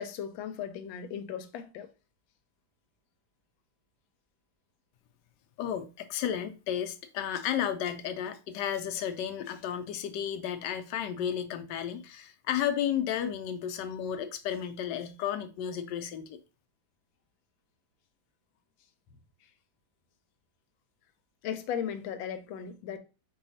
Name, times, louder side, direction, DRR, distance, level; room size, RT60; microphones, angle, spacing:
voice 1, 0.0-1.9 21.4-23.0, left 8 dB, 90° left, 1.4 m, -36 dB
voice 2, 5.6-16.4, left 9 dB, 75° left, 1.1 m, -33 dB
4.8 x 2.3 x 3.9 m
omnidirectional pair, 2.1 m